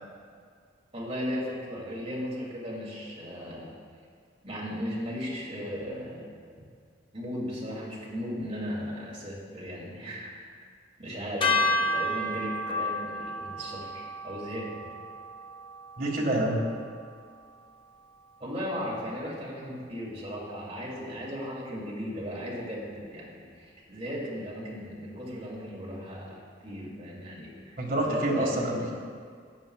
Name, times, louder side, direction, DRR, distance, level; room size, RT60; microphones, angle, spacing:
voice 1, 0.9-3.7 4.4-6.3 7.1-10.3 11.0-14.7 18.4-27.8 28.1-28.6, equal, 35° right, -6 dB, 2.7 m, -36 dB
sound 1, 11.4-17.7, left 2 dB, 30° left, 0.9 m, -32 dB
voice 2, 16.0-16.6 27.8-28.9, right 1 dB, 50° right, -2 dB, 1.7 m, -27 dB
14.5 x 9.8 x 2.4 m, 2.1 s
head